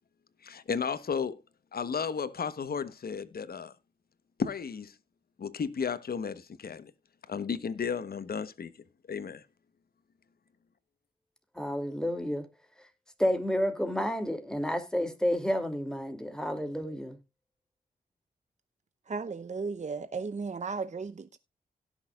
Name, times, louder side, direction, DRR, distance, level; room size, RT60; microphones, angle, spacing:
voice 1, 0.4-1.4 1.7-3.7 4.4-4.9 5.4-6.9 7.3-8.7 9.1-9.4, left 6 dB, 65° left, 1.2 m, -33 dB
voice 2, 11.5-12.5 13.2-17.2, equal, 5° left, 2.8 m, -30 dB
voice 3, 19.1-21.4, right 4 dB, 45° right, 0.8 m, -35 dB
17.5 x 6.4 x 2.4 m
supercardioid pair, 40°, 17 cm